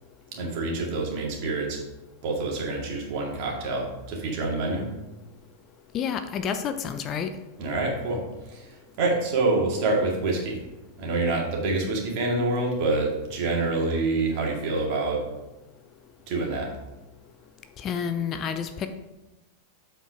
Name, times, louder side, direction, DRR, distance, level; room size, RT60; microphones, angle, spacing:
voice 1, 0.3-1.8 2.2-4.9 7.6-8.2 8.5-10.6 11.0-15.2 16.3-16.7, right 2 dB, 45° right, -1 dB, 2.1 m, -26 dB
voice 2, 5.9-7.3 17.8-18.9, left 7 dB, 30° left, 9 dB, 0.5 m, -29 dB
8.0 x 4.4 x 4.9 m, 1.0 s
figure-of-eight pair, 90°, 0 cm